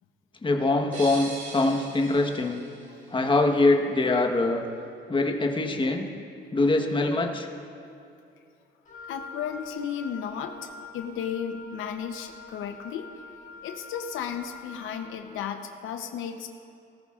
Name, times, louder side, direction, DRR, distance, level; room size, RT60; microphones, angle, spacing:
voice 1, 0.4-2.7 3.1-4.6 5.1-6.1 6.5-7.5, left 2 dB, 25° left, 3 dB, 1.2 m, -23 dB
sound 1, 0.9-3.7, right 3 dB, 55° right, 2.9 m, -42 dB
Wind instrument woodwind instrument, 8.9-15.1, left 4 dB, 40° left, 1.6 m, -45 dB
voice 2, 9.1-13.1 13.6-16.5, left 8 dB, 85° left, 5 dB, 0.8 m, -34 dB
18.5 x 13.5 x 2.5 m, 2.6 s
cardioid pair, 90°, 20 cm